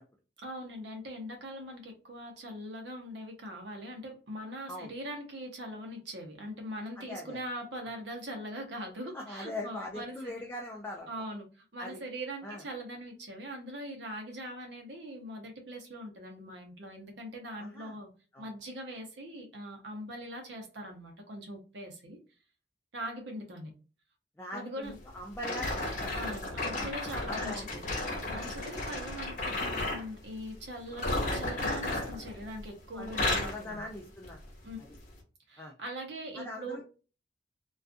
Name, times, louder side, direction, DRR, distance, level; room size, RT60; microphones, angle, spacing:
voice 1, 0.4-10.3 11.1-18.1 18.4-22.2 22.9-23.7 24.5-25.0 26.1-27.8 28.3-33.8 34.6-34.8 35.5-36.8, equal, 70° right, 2 dB, 0.8 m, -41 dB
voice 2, 7.0-7.4 9.1-11.2 11.8-12.0 12.4-12.6 17.6-18.0 18.3-18.5 24.4-26.1 26.7-27.8 28.3-28.5 32.9-33.1 33.4-34.4 34.8-34.9 35.6-35.7 36.3-36.8, left 1 dB, 10° left, -1 dB, 0.3 m, -42 dB
sound 1, 25.4-30.1 30.9-32.7 33.0-33.6 34.2-34.4 35.1-35.2, left 2 dB, 45° left, 0.8 m, -33 dB
2.4 x 2.3 x 2.4 m, 0.35 s
head